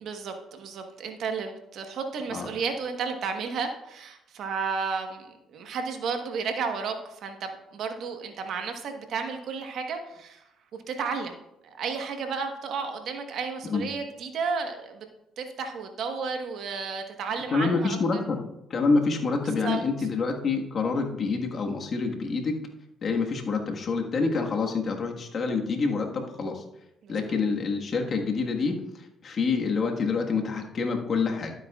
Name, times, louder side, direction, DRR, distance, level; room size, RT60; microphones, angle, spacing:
voice 1, 0.0-10.4 10.7-11.3 11.6-15.1 15.4-18.2 19.6-19.8 27.0-27.2, right 5 dB, 65° right, 5 dB, 1.2 m, -32 dB
voice 2, 17.5-18.4 18.7-22.6 23.0-26.6 27.1-31.5, left 4 dB, 50° left, 2 dB, 1.5 m, -27 dB
12.5 x 7.8 x 2.4 m, 0.87 s
supercardioid pair, 75°, 0 cm